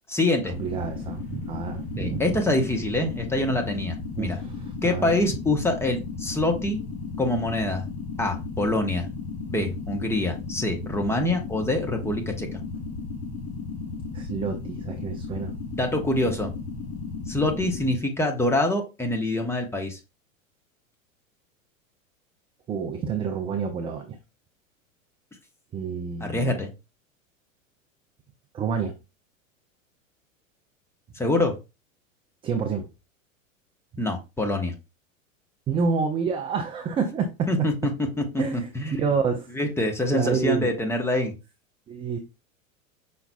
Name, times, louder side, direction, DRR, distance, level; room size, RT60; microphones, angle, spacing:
voice 1, 0.1-0.5 2.0-4.4 4.8-6.8 7.2-7.8 8.2-9.1 9.5-12.6 15.7-16.5 17.3-20.0 26.2-26.7 31.1-31.6 34.0-34.7 37.5-39.0 39.5-41.3, left 1 dB, 5° left, 0.9 m, -25 dB
sound 1, 0.5-18.0, left 4 dB, 30° left, 1.1 m, -35 dB
voice 2, 0.6-2.3 4.2-5.1 14.1-15.5 22.7-24.2 25.7-26.5 28.5-28.9 32.4-32.9 35.7-37.7 38.4-38.7 39.0-39.5 40.1-40.7 41.9-42.2, right 5 dB, 15° right, 0.4 m, -28 dB
5.6 x 4.2 x 2.2 m
hypercardioid pair, 95°, 41 cm